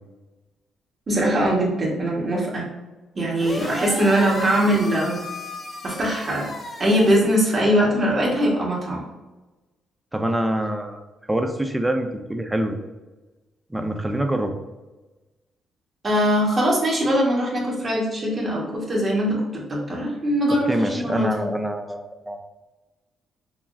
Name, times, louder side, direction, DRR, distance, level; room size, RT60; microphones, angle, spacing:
voice 1, 1.1-2.6 3.1-5.2 5.8-6.5 6.8-9.0 16.0-21.3, equal, 35° right, -4 dB, 1.4 m, -21 dB
sound 1, 3.4-7.1, left 2 dB, 30° left, 0.6 m, -34 dB
voice 2, 10.1-11.0 11.3-12.9 13.7-14.5 20.5-22.4, right 1 dB, 10° right, 6 dB, 0.5 m, -25 dB
5.7 x 2.0 x 2.6 m, 1.1 s
cardioid pair, 90°, 0 cm